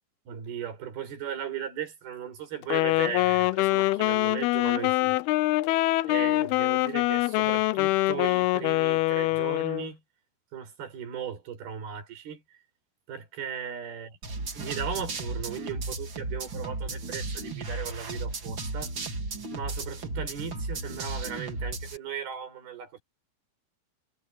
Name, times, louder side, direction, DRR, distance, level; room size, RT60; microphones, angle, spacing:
voice 1, 0.3-5.2 6.0-10.0 10.5-12.6 13.1-14.2 14.5-18.9 19.5-23.0, right 8 dB, 55° right, 7.1 m, -37 dB
Wind instrument woodwind instrument, 2.6-9.9, left 18 dB, 90° left, 2.2 m, -24 dB
sound 1, 14.2-22.0, right 3 dB, 30° right, 2.7 m, -34 dB
omnidirectional pair, 5.3 m